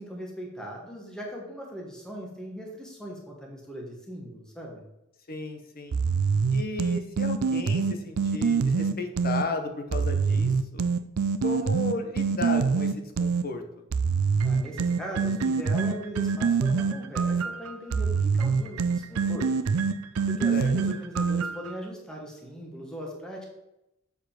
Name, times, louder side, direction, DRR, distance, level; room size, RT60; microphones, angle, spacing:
voice 1, 0.0-4.8 14.4-19.5 20.3-23.5, equal, 5° left, -1 dB, 1.3 m, -39 dB
voice 2, 5.3-6.0 6.5-10.8 11.4-13.6 20.5-20.7, left 2 dB, 45° left, 5 dB, 1.1 m, -34 dB
sound 1, 5.9-9.5 9.9-13.5 13.9-21.7, right 5 dB, 85° right, 0.5 m, -25 dB
6.9 x 4.8 x 5.8 m, 0.89 s
head